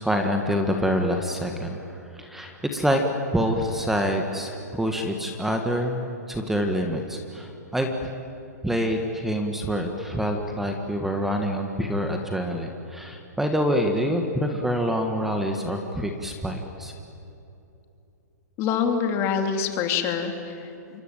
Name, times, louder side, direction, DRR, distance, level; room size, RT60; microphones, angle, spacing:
voice 1, 0.0-3.0 3.3-8.1 8.6-16.9, equal, 5° right, 4 dB, 1.8 m, -26 dB
voice 2, 18.6-21.0, left 7 dB, 30° left, 5 dB, 3.0 m, -26 dB
27.0 x 24.5 x 9.1 m, 2.8 s
hypercardioid pair, 145°, 10 cm